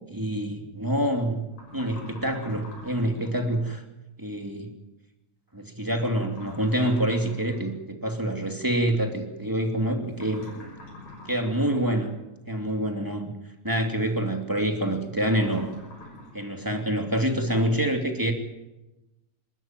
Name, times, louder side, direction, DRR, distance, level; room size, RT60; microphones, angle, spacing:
voice 1, 0.1-1.4 1.7-3.8 4.2-4.7 5.5-10.4 11.2-12.1 12.5-13.3 13.6-15.7 16.3-18.3, right 1 dB, 5° right, 3 dB, 2.3 m, -26 dB
sound 1, 1.5-3.4 6.1-7.7 10.1-12.1 15.2-16.5, left 2 dB, 70° left, 7.5 m, -45 dB
26.5 x 13.5 x 9.2 m, 1.0 s
omnidirectional pair, 3.3 m